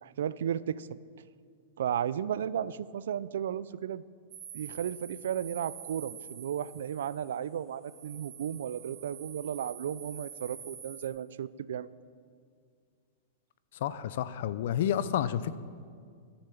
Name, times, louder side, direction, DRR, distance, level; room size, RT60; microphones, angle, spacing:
voice 1, 0.0-1.0 1.8-4.0 4.5-11.9, right 9 dB, 85° right, 18 dB, 0.4 m, -34 dB
sound 1, 4.3-11.1, right 8 dB, 40° right, 1.5 m, -47 dB
voice 2, 13.8-15.6, left 10 dB, 60° left, 15 dB, 0.5 m, -30 dB
13.0 x 7.0 x 6.9 m, 2.1 s
supercardioid pair, 165°, 0 cm